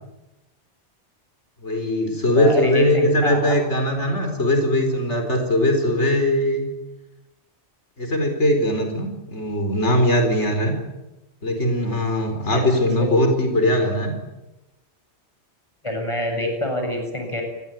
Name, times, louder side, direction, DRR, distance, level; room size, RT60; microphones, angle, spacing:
voice 1, 1.6-6.7 8.0-10.7 11.4-14.1, left 1 dB, 90° left, 4 dB, 4.9 m, -20 dB
voice 2, 2.3-3.5 12.5-13.1 15.8-17.4, left 1 dB, 25° left, 3 dB, 8.0 m, -27 dB
29.5 x 20.5 x 9.3 m, 1.0 s
omnidirectional pair, 1.2 m